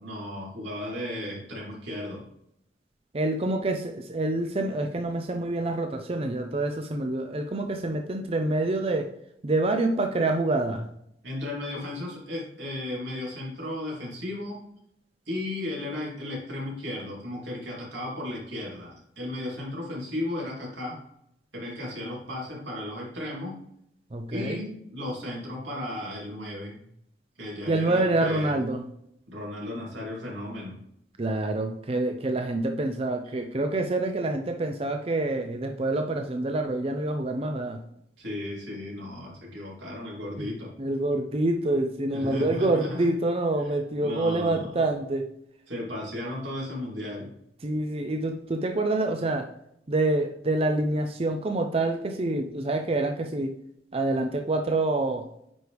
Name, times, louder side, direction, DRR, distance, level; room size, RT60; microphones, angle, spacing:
voice 1, 0.0-2.2 11.2-14.6 15.2-21.0 21.5-23.6 24.3-26.8 27.4-28.5 29.3-30.7 33.2-33.4 38.2-40.7 42.1-43.1 43.6-43.7 44.0-44.8 45.7-47.3, left 1 dB, 90° right, -4 dB, 3.2 m, -35 dB
voice 2, 3.1-9.1 9.4-10.9 24.1-24.6 27.7-28.8 31.2-37.8 40.4-40.5 40.8-45.3 47.6-49.5 49.9-53.6 53.9-55.3, right 2 dB, 35° right, 5 dB, 0.5 m, -27 dB
9.4 x 4.6 x 3.4 m, 0.75 s
head